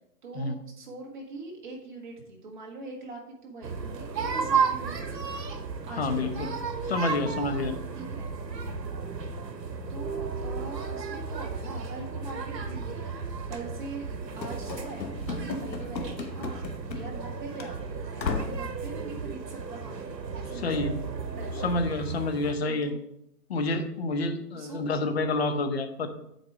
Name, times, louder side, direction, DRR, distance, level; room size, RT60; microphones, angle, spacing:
voice 1, 0.2-5.3 5.8-6.6 7.9-8.3 9.9-13.1 13.5-16.6 16.9-20.0 20.3-20.8 21.4-21.7 22.6-23.0 24.5-24.8, right 3 dB, 30° right, 0 dB, 1.3 m, -42 dB
sound 1, 3.6-22.5, right 5 dB, 80° right, 1.1 m, -34 dB
voice 2, 6.0-6.5 6.9-7.8 20.6-21.0 21.6-22.9 23.5-26.1, left 2 dB, 40° left, 7 dB, 0.8 m, -28 dB
Run / Slam, 14.4-17.3 17.6-17.7 18.2-18.7, left 4 dB, 85° left, 1.2 m, -35 dB
7.9 x 4.6 x 4.6 m, 0.77 s
hypercardioid pair, 150°, 50 cm